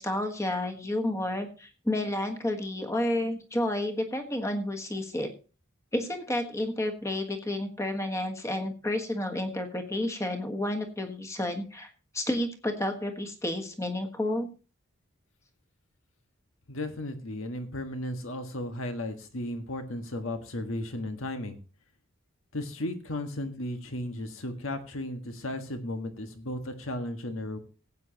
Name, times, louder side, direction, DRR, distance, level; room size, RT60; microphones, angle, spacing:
voice 1, 0.0-5.3 5.9-14.5, left 1 dB, 15° left, 5 dB, 1.4 m, -31 dB
voice 2, 16.7-21.6 22.5-27.6, left 1 dB, 80° left, 6 dB, 1.6 m, -35 dB
18.0 x 8.5 x 2.9 m, 0.34 s
head